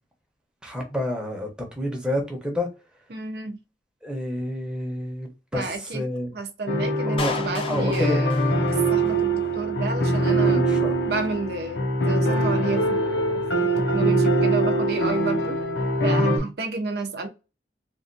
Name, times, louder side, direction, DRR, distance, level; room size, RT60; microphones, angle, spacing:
voice 1, 0.6-2.7 4.0-6.3 7.1-7.3 7.7-8.2 10.5-10.9 16.1-16.4, left 1 dB, 5° right, 0.8 m, -29 dB
voice 2, 3.1-3.6 5.5-6.0 6.3-8.3 8.9-10.6 11.1-15.6 16.0-17.3, right 3 dB, 60° right, 0.5 m, -31 dB
sound 1, 6.7-16.4, right 1 dB, 85° left, 0.8 m, -23 dB
Clapping, 7.2-9.2, left 4 dB, 30° left, 0.5 m, -33 dB
3.3 x 2.4 x 2.6 m
head